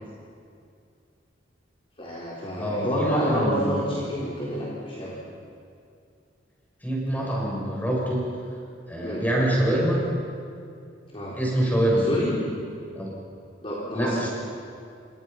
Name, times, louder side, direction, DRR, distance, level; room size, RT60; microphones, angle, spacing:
voice 1, 2.0-5.2 9.0-9.2 11.1-11.4 12.0-12.3 13.6-14.3, equal, 30° left, -6 dB, 3.9 m, -28 dB
voice 2, 2.6-4.1 6.8-8.3 8.9-10.1 11.3-12.1 12.9-13.1 13.9-14.3, right 1 dB, 10° left, -4 dB, 7.8 m, -25 dB
29.0 x 25.5 x 5.7 m, 2.4 s
head